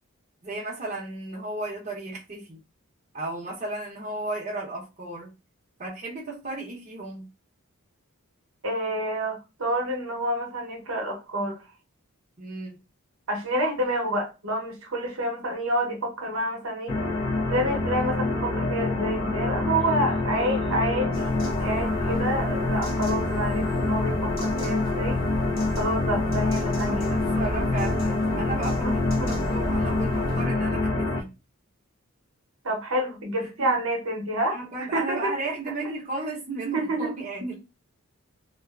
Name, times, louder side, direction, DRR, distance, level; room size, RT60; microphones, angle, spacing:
voice 1, 0.4-2.6 3.1-5.3 5.8-7.3 12.4-12.7 20.3-20.5 26.9-29.0 29.3-31.3 33.6-33.7 34.5-37.5, right 2 dB, 35° right, 0.7 m, -34 dB
voice 2, 8.6-11.6 13.3-17.0 17.5-25.2 25.8-27.2 28.8-29.3 32.6-35.3 36.7-37.1, right 1 dB, 65° right, 0.8 m, -28 dB
sound 1, 16.9-31.2, left 2 dB, 85° left, 0.6 m, -26 dB
sound 2, 21.1-30.5, equal, 40° left, 0.7 m, -37 dB
2.5 x 2.3 x 2.3 m
head